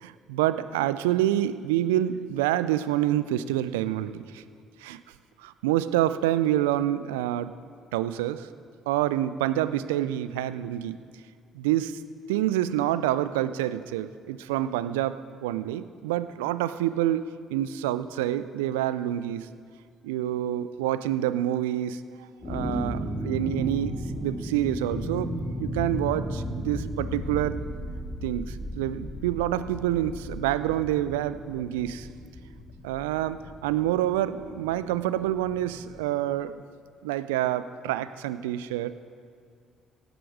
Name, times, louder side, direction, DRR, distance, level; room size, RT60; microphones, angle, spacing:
voice 1, 0.0-4.4 4.8-5.0 5.4-7.5 7.9-8.5 8.9-11.0 11.5-12.0 12.3-19.5 20.0-22.0 22.5-25.3 25.6-27.6 28.2-32.1 32.8-36.6 37.0-39.0, right 13 dB, 80° right, 15 dB, 0.4 m, -27 dB
sound 1, 22.4-36.1, equal, 25° left, 2.1 m, -35 dB
17.0 x 7.9 x 4.8 m, 2.2 s
hypercardioid pair, 50°, 0 cm